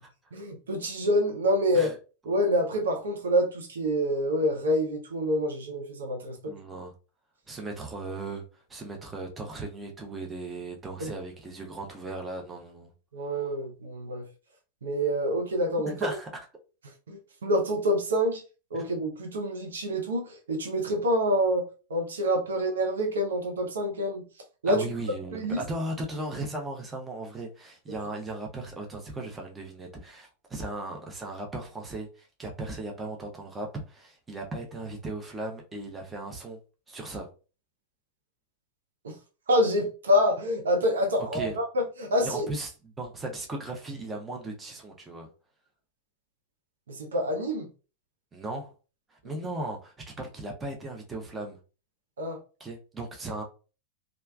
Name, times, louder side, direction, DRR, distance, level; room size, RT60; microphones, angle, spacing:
voice 1, 0.3-1.9 2.3-6.5 11.0-11.1 13.1-14.3 14.8-15.9 17.1-18.4 18.7-24.2 24.6-24.9 25.3-25.6 39.0-39.1 39.5-42.5 46.9-47.7 52.2-52.4, equal, 65° right, 0.6 m, -27 dB
voice 2, 6.4-6.9 7.5-12.9 15.8-16.4 18.7-18.8 24.7-36.6 36.9-37.3 41.2-41.6 42.2-45.3 48.3-48.7 49.1-51.6 52.6-53.4, right 2 dB, 15° right, 0.7 m, -37 dB
3.2 x 2.4 x 2.3 m
figure-of-eight pair, 90°, 0 cm